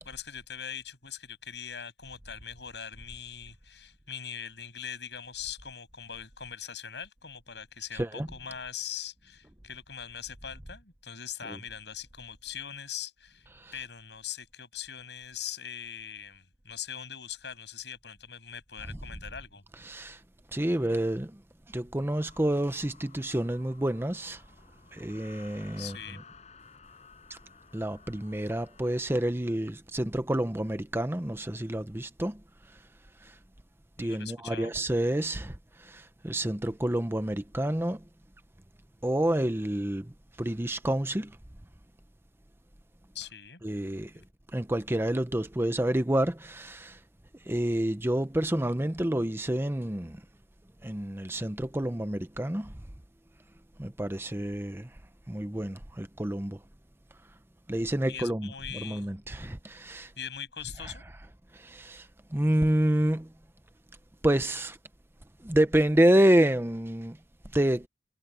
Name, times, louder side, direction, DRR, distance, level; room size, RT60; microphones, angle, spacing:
voice 1, 0.0-19.6 25.8-26.2 34.0-34.7 43.1-43.6 44.1-44.2 58.1-59.1 60.2-61.0, left 8 dB, 75° left, 7.3 m, -41 dB
voice 2, 7.9-8.3 11.5-11.6 13.5-13.7 19.8-20.2 20.5-21.4 21.7-24.4 24.9-26.0 27.3-27.4 27.7-32.4 33.2-33.3 34.0-35.6 35.8-38.0 39.0-40.1 40.4-41.3 43.6-44.1 44.5-47.0 47.5-50.2 50.8-52.7 53.8-54.9 55.3-56.6 57.7-60.1 60.8-60.9 61.5-63.3 64.2-64.8 65.4-67.2 67.5-67.9, right 1 dB, 15° right, 0.8 m, -28 dB
sound 1, 22.2-29.2, left 5 dB, 40° left, 6.0 m, -55 dB
head